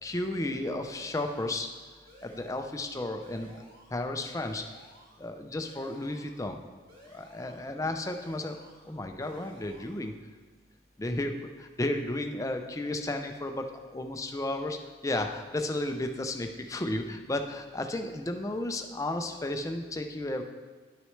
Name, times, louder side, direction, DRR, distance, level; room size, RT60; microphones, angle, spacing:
voice 1, 0.0-1.7 2.2-4.7 5.2-6.6 7.0-8.6 8.8-10.1 11.0-20.4, left 1 dB, 15° left, 5 dB, 0.4 m, -33 dB
sound 1, 0.9-1.7 2.1-2.9 3.2-4.1 4.4-5.3 5.6-6.4 6.9-7.7 8.1-8.9 9.2-10.1, equal, 50° right, 2.7 m, -55 dB
11.0 x 6.1 x 3.2 m, 1.4 s
head